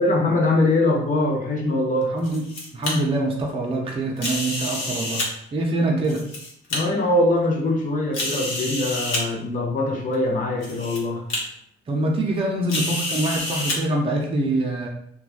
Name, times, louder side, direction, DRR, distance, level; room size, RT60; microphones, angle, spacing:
voice 1, 0.0-2.2 5.9-6.0 6.7-11.2, left 2 dB, 40° left, -1 dB, 0.6 m, -22 dB
sound 1, 2.0-2.9 4.2-5.3 6.0-6.8 7.4-7.5 8.1-9.2 10.1-10.2 10.6-11.0 11.3-11.4 12.7-13.8, left 1 dB, 80° left, 1.0 m, -28 dB
voice 2, 2.1-2.4 2.7-5.2 5.5-6.2 11.9-14.9, right 2 dB, 30° right, -1 dB, 0.6 m, -24 dB
3.0 x 2.3 x 2.5 m, 0.71 s
cardioid pair, 90°, 20 cm